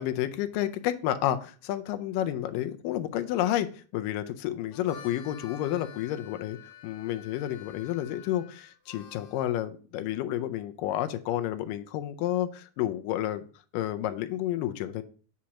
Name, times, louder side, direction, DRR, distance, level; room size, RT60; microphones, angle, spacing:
voice 1, 0.0-6.6 6.8-13.4 13.7-15.0, left 12 dB, 85° left, 9 dB, 2.2 m, -30 dB
Harmonica, 4.6-9.5, left 8 dB, 65° left, 2.0 m, -49 dB
8.3 x 2.9 x 6.2 m, 0.40 s
omnidirectional pair, 3.9 m